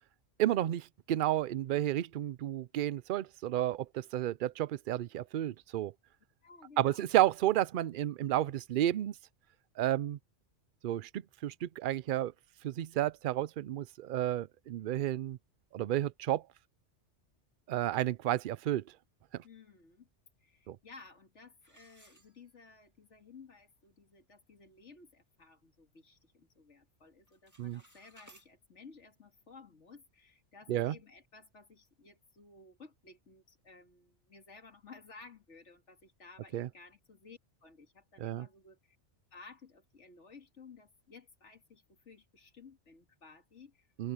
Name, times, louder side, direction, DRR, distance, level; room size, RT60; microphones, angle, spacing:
voice 1, 0.4-5.9 6.8-9.1 9.8-10.2 10.8-12.3 12.6-15.4 15.7-16.4 17.7-18.8 19.3-19.4 20.7-20.8 27.6-27.8 30.7-31.0 36.5-36.7 38.2-38.5 44.0-44.1, right 13 dB, 60° right, 0.6 m, -31 dB
voice 2, 6.4-7.0 19.4-20.1 20.4-39.0 39.3-43.9, left 4 dB, 85° left, 2.3 m, -56 dB
sound 1, 21.6-22.9 23.3-23.4 24.0-24.1 24.5-24.8 25.2-26.3 26.6-26.9 27.2-28.5, right 1 dB, 15° right, 2.1 m, -62 dB
omnidirectional pair, 1.2 m